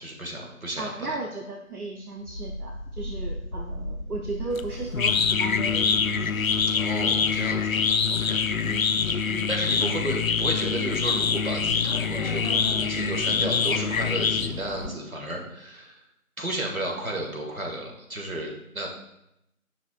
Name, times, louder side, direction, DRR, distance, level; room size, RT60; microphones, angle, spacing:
voice 1, 0.0-1.2 6.7-7.8 8.1-8.4 9.0-9.1 9.5-16.0 16.4-18.9, right 1 dB, 70° right, 0 dB, 1.8 m, -33 dB
voice 2, 0.8-6.1 8.6-9.0 9.3-9.5, right 2 dB, 90° right, 0 dB, 1.0 m, -35 dB
sound 1, 2.2-15.0, equal, 35° left, 2.6 m, -39 dB
sound 2, 4.5-14.9, left 6 dB, 70° left, 0.5 m, -25 dB
10.5 x 5.8 x 2.4 m, 0.83 s
figure-of-eight pair, 180°, 43 cm